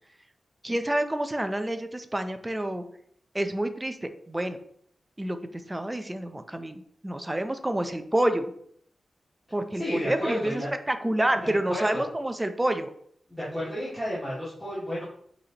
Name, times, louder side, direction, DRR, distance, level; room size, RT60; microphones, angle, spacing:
voice 1, 0.6-2.8 3.3-4.6 5.2-8.5 9.5-10.6 10.9-12.9, right 1 dB, 15° right, 8 dB, 0.6 m, -28 dB
voice 2, 9.8-10.7 11.4-12.1 13.3-15.0, equal, 5° left, -11 dB, 2.1 m, -31 dB
8.2 x 4.2 x 2.9 m, 0.66 s
wide cardioid pair, 130°, 0 cm